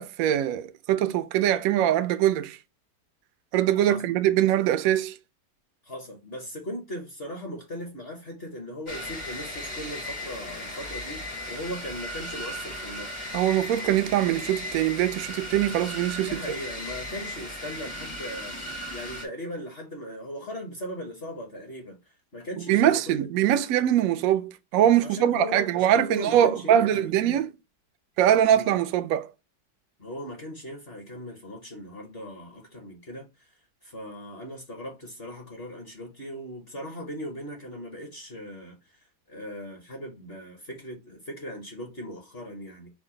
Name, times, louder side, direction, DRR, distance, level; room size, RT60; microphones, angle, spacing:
voice 1, 0.0-2.6 3.5-5.2 13.3-16.4 22.7-27.5 28.2-29.3, right 11 dB, 70° right, 0.8 m, -23 dB
voice 2, 3.8-4.1 5.8-13.2 16.2-18.6 18.9-23.3 24.9-27.4 28.5-28.7 30.0-33.5 33.8-42.9, equal, 40° left, 1.1 m, -39 dB
sound 1, 8.9-19.2, left 1 dB, 25° left, 0.8 m, -36 dB
4.7 x 2.2 x 4.3 m
omnidirectional pair, 1.9 m